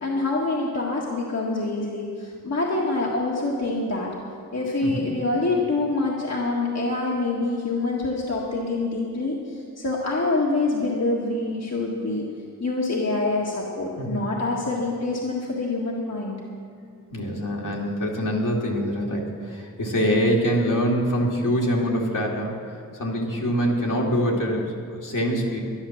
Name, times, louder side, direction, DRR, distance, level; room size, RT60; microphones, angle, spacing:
voice 1, 0.0-4.1 4.5-12.2 12.6-16.4, left 2 dB, 50° left, -3 dB, 1.7 m, -26 dB
voice 2, 14.0-14.3 17.1-22.6 23.0-25.6, equal, 65° left, -2 dB, 2.3 m, -24 dB
11.5 x 11.0 x 7.1 m, 2.3 s
wide cardioid pair, 100°, 33 cm